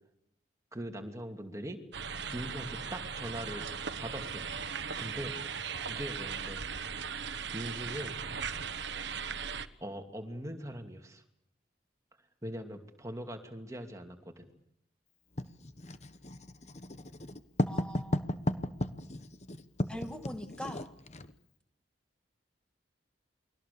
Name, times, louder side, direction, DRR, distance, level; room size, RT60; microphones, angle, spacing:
voice 1, 0.7-1.8 2.3-3.6 4.0-5.3 5.9-6.6 7.5-8.1 9.8-11.2 12.4-14.4, equal, 15° right, 4 dB, 2.7 m, -41 dB
sound 1, 1.9-9.7, right 6 dB, 65° right, 1.2 m, -38 dB
Writing, 15.4-21.3, left 1 dB, 35° left, 1.2 m, -35 dB
voice 2, 17.7-18.3 19.9-20.9, left 1 dB, 5° left, 6 dB, 2.4 m, -42 dB
29.0 x 23.0 x 7.0 m, 0.75 s
head